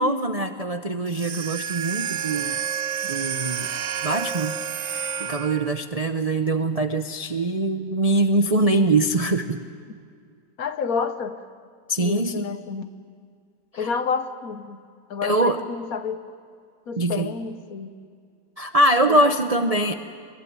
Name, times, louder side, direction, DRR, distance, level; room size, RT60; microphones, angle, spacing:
voice 1, 0.0-2.6 3.0-3.7 4.0-4.6 5.2-9.6 11.9-12.5 13.7-13.9 15.2-15.6 17.0-17.3 18.6-19.9, right 2 dB, 40° right, 6 dB, 0.5 m, -23 dB
sound 1, 1.1-5.8, right 8 dB, 55° right, 1.0 m, -30 dB
voice 2, 10.6-11.4 12.0-12.9 13.7-14.8 15.1-16.2 16.9-18.0 19.1-19.3, left 5 dB, 55° left, 10 dB, 1.2 m, -29 dB
25.0 x 21.0 x 9.5 m, 2.2 s
omnidirectional pair, 2.0 m